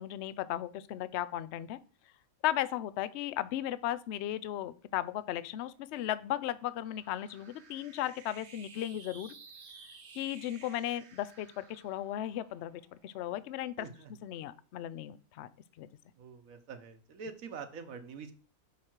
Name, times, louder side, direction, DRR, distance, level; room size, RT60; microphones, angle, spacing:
voice 1, 0.0-1.8 2.4-9.3 10.1-13.9 14.2-15.5 15.8-15.9, left 12 dB, 65° left, 16 dB, 0.7 m, -36 dB
sound 1, 5.2-13.8, right 5 dB, 50° right, 1.1 m, -56 dB
voice 2, 13.8-14.1 16.2-18.3, right 5 dB, 70° right, 8 dB, 1.3 m, -45 dB
7.2 x 4.9 x 4.5 m, 0.37 s
omnidirectional pair, 1.5 m